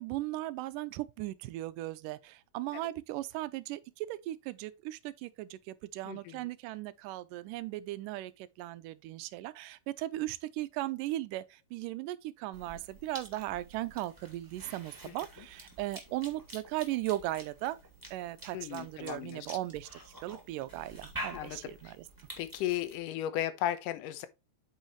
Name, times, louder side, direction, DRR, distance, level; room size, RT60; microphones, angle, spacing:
voice 1, 0.0-17.8 18.1-22.0, right 16 dB, 80° right, 2.1 m, -37 dB
voice 2, 6.1-6.5 15.1-15.2 18.5-19.5 21.3-22.0 22.4-24.3, left 12 dB, 80° left, 2.2 m, -35 dB
Cough / Chewing mastication, 12.5-23.0, right 1 dB, 5° right, 2.0 m, -48 dB
9.0 x 5.7 x 3.1 m
omnidirectional pair, 3.9 m